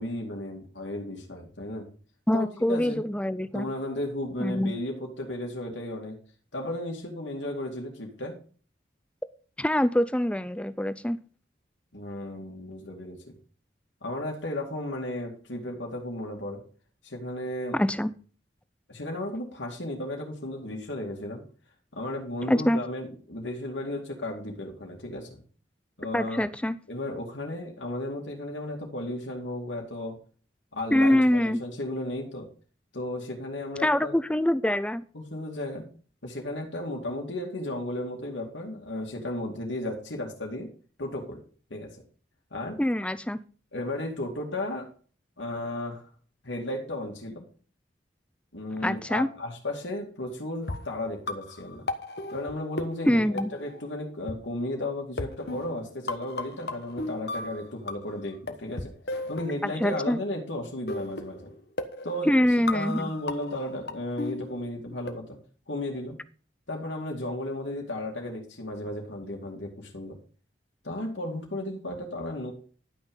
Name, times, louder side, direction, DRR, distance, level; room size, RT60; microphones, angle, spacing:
voice 1, 0.0-1.9 2.3-3.0 3.5-6.2 6.5-8.4 11.9-13.3 14.0-16.6 17.0-17.8 18.9-21.4 21.9-25.4 26.0-26.5 26.9-30.2 30.7-32.5 32.9-34.2 35.1-35.9 36.2-40.7 41.0-41.4 41.7-42.0 42.5-42.8 43.7-44.9 45.4-46.1 46.4-47.4 48.5-51.9 52.3-58.9 59.3-61.5 62.0-62.3 62.7-65.4 65.7-66.2 66.7-70.2 70.8-72.5, left 1 dB, 90° left, 2.5 m, -34 dB
voice 2, 2.3-3.7 4.4-4.7 9.6-11.2 17.7-18.1 22.5-22.8 26.1-26.8 30.9-31.6 33.8-35.0 42.8-43.4 48.8-49.3 53.1-53.5 59.6-60.2 62.2-63.1, left 1 dB, 5° left, 0.5 m, -24 dB
sound 1, 50.6-54.0 54.3-54.4 55.2-58.2 58.5-60.1 60.9-65.1, left 2 dB, 60° left, 1.3 m, -36 dB
12.0 x 6.1 x 5.5 m
head